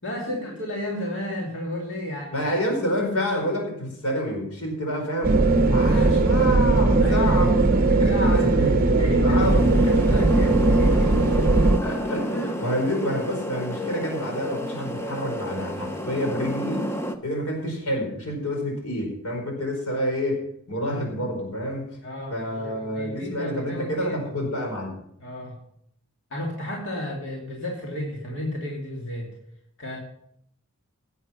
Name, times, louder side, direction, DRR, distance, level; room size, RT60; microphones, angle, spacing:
voice 1, 0.0-2.5 4.9-5.0 7.0-7.4 7.9-11.4 22.0-23.9 25.2-25.5 26.3-29.3 29.8-30.0, left 1 dB, 55° left, -3 dB, 2.9 m, -33 dB
voice 2, 2.3-5.4 5.7-9.8 10.1-10.2 11.8-16.9 17.2-20.4 20.7-21.8 22.3-24.9, equal, 85° left, 2 dB, 4.9 m, -28 dB
sound 1, 5.2-11.8, right 2 dB, 40° right, 0.8 m, -19 dB
sound 2, 9.4-17.2, equal, 10° left, 0.8 m, -31 dB
17.0 x 8.1 x 5.8 m, 0.71 s
head